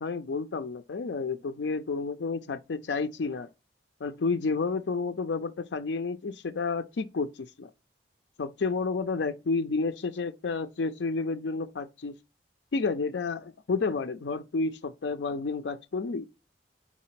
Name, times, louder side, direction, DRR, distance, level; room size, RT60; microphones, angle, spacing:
voice 1, 0.0-3.5 4.0-7.7 8.4-12.2 12.7-16.3, left 4 dB, 75° left, 0.5 m, -30 dB
4.8 x 4.2 x 5.7 m
head